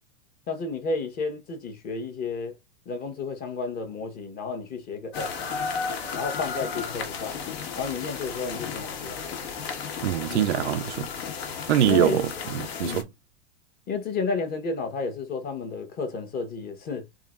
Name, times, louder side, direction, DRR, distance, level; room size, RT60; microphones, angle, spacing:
voice 1, 0.5-2.6 2.9-5.3 6.1-7.4 7.8-9.2 10.3-10.5 11.8-12.2 12.8-13.1 13.9-17.1, left 4 dB, 25° left, 1.1 m, -31 dB
sound 1, 5.1-13.0, left 6 dB, 60° left, 1.5 m, -33 dB
voice 2, 10.0-11.1 11.7-13.1, right 12 dB, 85° right, 0.5 m, -24 dB
3.8 x 3.7 x 2.4 m
supercardioid pair, 140°, 33 cm